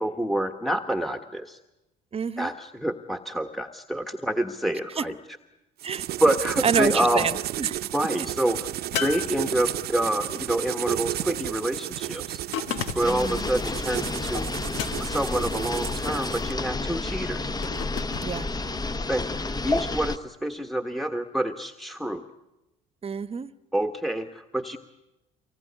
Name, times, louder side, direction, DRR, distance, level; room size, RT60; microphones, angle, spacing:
voice 1, 0.0-1.6 2.4-5.2 6.2-7.3 7.9-8.7 9.0-12.4 12.9-14.5 15.0-17.5 19.1-22.2 23.7-24.8, right 1 dB, ahead, 8 dB, 1.4 m, -27 dB
voice 2, 2.1-2.5 5.0-5.1 5.8-6.1 6.6-7.8 13.1-13.4 18.2-18.5 23.0-23.5, right 6 dB, 35° right, 15 dB, 1.1 m, -28 dB
sound 1, 5.8-16.5, right 13 dB, 65° right, 0.9 m, -32 dB
sound 2, 8.9-10.0 12.5-13.3 14.7-15.3 17.6-18.3, left 8 dB, 85° left, 1.5 m, -33 dB
sound 3, 13.0-20.2, left 3 dB, 20° left, 1.0 m, -30 dB
24.5 x 19.5 x 9.9 m, 0.98 s
supercardioid pair, 75°, 18 cm